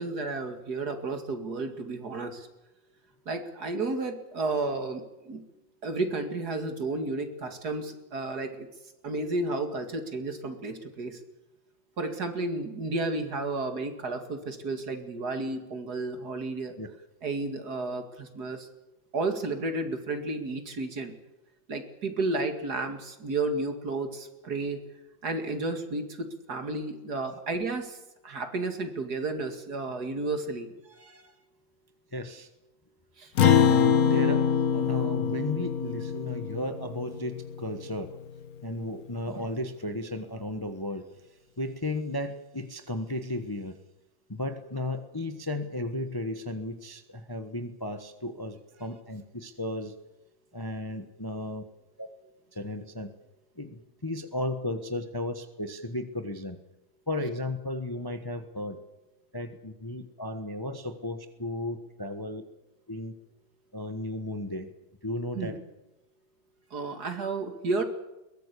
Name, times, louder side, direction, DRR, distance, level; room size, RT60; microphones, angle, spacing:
voice 1, 0.0-2.5 3.3-5.4 5.8-8.7 9.0-11.2 12.0-16.7 17.2-18.7 19.1-21.1 21.7-24.8 25.2-28.0 28.2-31.3 33.2-33.3 65.3-65.6 66.7-67.8, right 3 dB, 55° right, 6 dB, 2.6 m, -32 dB
voice 2, 32.1-32.5 33.7-34.5 34.7-38.2 38.6-41.0 41.6-43.8 44.3-49.9 50.5-51.6 52.0-52.1 52.5-53.1 53.6-56.6 57.1-58.8 59.3-62.4 62.9-63.1 63.7-64.7 65.0-65.6, left 1 dB, 15° left, 7 dB, 1.1 m, -34 dB
Acoustic guitar, 33.4-38.1, left 7 dB, 55° left, 1.4 m, -24 dB
22.0 x 18.5 x 8.5 m, 0.97 s
omnidirectional pair, 2.0 m